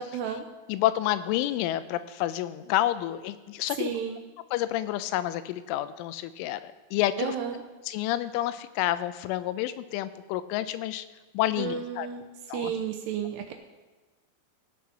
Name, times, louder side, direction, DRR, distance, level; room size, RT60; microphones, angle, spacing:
voice 1, 0.1-0.4 3.8-4.2 7.2-7.6 11.6-12.2 12.5-13.5, right 8 dB, 80° right, 5 dB, 2.6 m, -32 dB
voice 2, 0.7-3.9 4.5-7.4 7.9-11.1 11.3-12.1 12.5-12.7, left 14 dB, 90° left, 13 dB, 3.2 m, -29 dB
16.5 x 8.5 x 5.9 m, 1.2 s
omnidirectional pair, 5.5 m